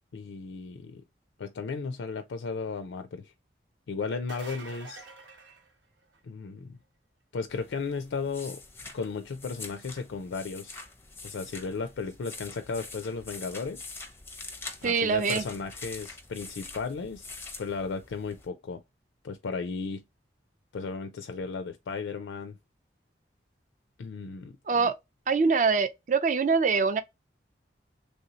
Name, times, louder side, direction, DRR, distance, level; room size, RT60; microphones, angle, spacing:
voice 1, 0.1-1.0 1.4-3.3 3.9-5.1 6.2-6.8 7.3-8.6 8.9-10.8 11.2-13.9 14.8-17.3 17.6-18.8 19.2-20.0 20.7-22.6 24.0-24.9, left 4 dB, 85° left, 0.4 m, -35 dB
sound 1, 4.1-6.4 11.9-12.0 13.8-13.9, right 3 dB, 85° right, 0.9 m, -47 dB
sound 2, 7.5-18.5, left 3 dB, 15° left, 0.5 m, -45 dB
voice 2, 14.8-15.4 24.7-24.9 25.3-27.0, right 5 dB, 40° right, 0.4 m, -24 dB
3.3 x 2.6 x 2.8 m
head